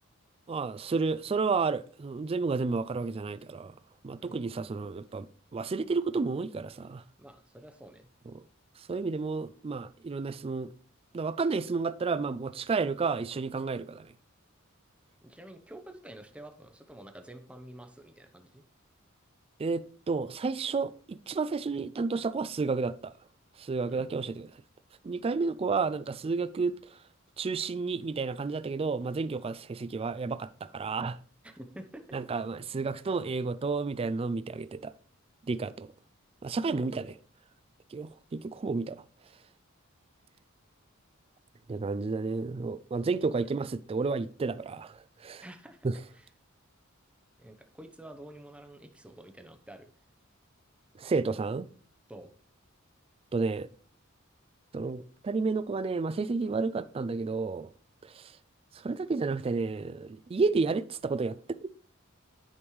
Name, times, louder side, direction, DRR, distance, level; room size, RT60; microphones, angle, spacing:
voice 1, 0.5-3.7 4.0-5.3 5.5-7.0 8.3-8.4 8.8-10.7 11.1-14.1 19.6-23.1 23.6-24.5 25.0-27.0 27.4-31.2 32.1-34.9 35.5-35.9 36.4-37.2 37.9-39.0 41.7-45.4 45.8-46.0 51.0-51.7 53.3-53.7 54.7-57.7 58.0-58.3 58.7-61.7, right 4 dB, 25° right, 0.3 m, -31 dB
voice 2, 7.2-8.1 15.2-18.6 23.9-24.1 31.4-32.0 45.4-45.8 47.4-49.9 52.1-52.3, right 1 dB, 5° right, 0.7 m, -48 dB
9.8 x 5.3 x 3.1 m
head